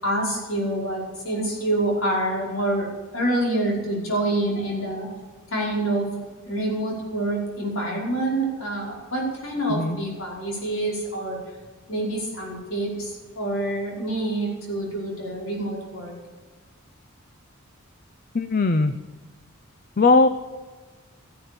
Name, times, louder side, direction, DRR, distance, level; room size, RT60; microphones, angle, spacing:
voice 1, 0.0-2.9 3.1-5.1 5.5-6.1 6.5-11.4 11.9-16.1, right 1 dB, 75° left, -2 dB, 5.2 m, -26 dB
voice 2, 18.3-18.9 20.0-20.3, left 3 dB, 45° left, 10 dB, 0.6 m, -18 dB
14.5 x 10.0 x 6.9 m, 1.4 s
head